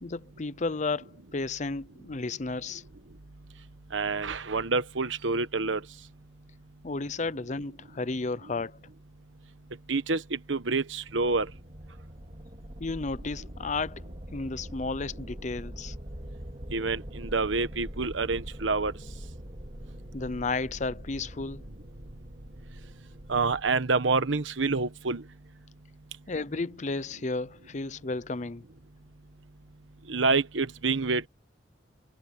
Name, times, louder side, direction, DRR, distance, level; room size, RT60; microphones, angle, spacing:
voice 1, 0.0-2.8 6.8-8.8 12.8-14.0 14.3-16.0 20.1-21.7 26.3-28.6, left 3 dB, 40° left, 0.6 m, -33 dB
voice 2, 3.9-5.8 9.9-11.5 16.7-18.9 23.3-25.2 30.1-31.3, right 3 dB, 85° right, 1.2 m, -27 dB
sound 1, 11.1-23.7, equal, 35° right, 2.9 m, -43 dB
head